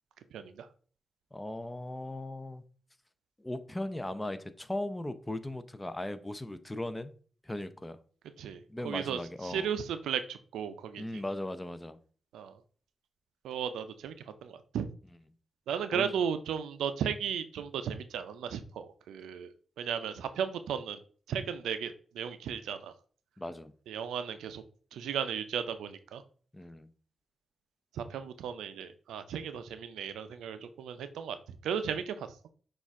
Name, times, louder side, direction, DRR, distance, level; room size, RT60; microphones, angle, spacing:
voice 1, 0.3-0.7 8.4-11.0 12.3-12.6 13.4-14.1 14.4-14.9 15.7-19.5 19.8-21.0 21.3-22.9 23.9-24.6 24.9-26.2 27.9-31.4 31.6-32.3, right 8 dB, 90° right, 11 dB, 0.4 m, -35 dB
voice 2, 1.3-2.6 3.4-7.1 7.4-8.0 8.7-9.7 11.0-12.0 15.9-16.1 23.4-23.7 26.5-26.9, left 1 dB, 15° left, 12 dB, 0.5 m, -38 dB
6.2 x 2.4 x 3.5 m, 0.43 s
supercardioid pair, 50°, 0 cm